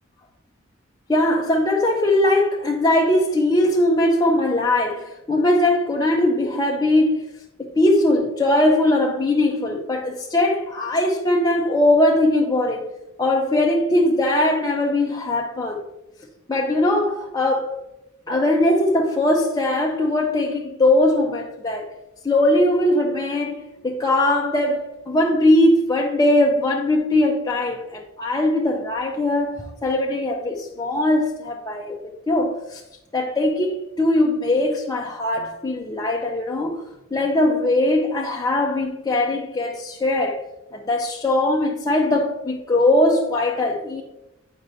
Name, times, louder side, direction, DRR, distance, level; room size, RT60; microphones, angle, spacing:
voice 1, 1.1-7.2 7.6-12.8 13.2-15.8 16.5-17.8 18.3-21.9 22.2-32.0 32.3-32.8 33.1-36.8 37.1-40.4 40.7-44.0, left 1 dB, 20° left, 0.5 m, -20 dB
9.3 x 5.2 x 2.7 m
head